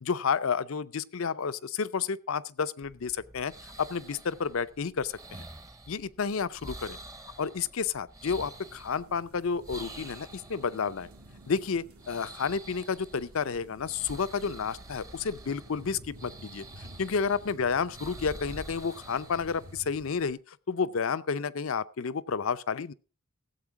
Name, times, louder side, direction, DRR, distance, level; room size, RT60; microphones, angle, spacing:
voice 1, 0.0-3.5 3.8-5.4 5.9-7.0 7.4-11.1 11.5-16.6 17.0-22.9, left 5 dB, 65° left, 0.5 m, -31 dB
sound 1, 2.8-20.3, right 1 dB, 15° right, 0.7 m, -48 dB
sound 2, 8.4-20.1, equal, 80° right, 2.3 m, -52 dB
15.0 x 8.0 x 4.7 m
head